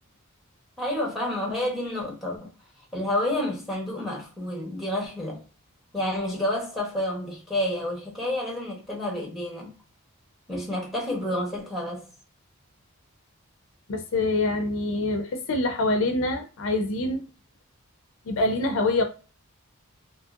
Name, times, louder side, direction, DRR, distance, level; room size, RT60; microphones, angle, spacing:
voice 1, 0.8-2.5 2.9-5.4 5.9-9.7 10.5-12.1, left 1 dB, ahead, 1.0 m, -29 dB
voice 2, 13.9-17.2 18.3-19.0, left 2 dB, 60° left, 0.4 m, -25 dB
2.8 x 2.7 x 2.4 m
head